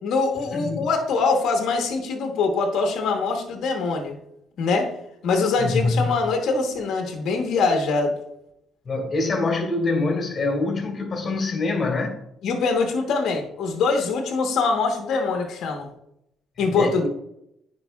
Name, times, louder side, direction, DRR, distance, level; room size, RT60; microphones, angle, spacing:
voice 1, 0.0-4.2 4.6-4.9 5.2-8.2 12.4-15.9 16.6-17.1, left 4 dB, 70° left, 1.1 m, -23 dB
voice 2, 0.5-0.9 5.6-6.1 8.8-12.2 16.6-17.1, left 3 dB, 35° left, 2.5 m, -25 dB
9.7 x 4.9 x 2.4 m
cardioid pair, 90°, 0 cm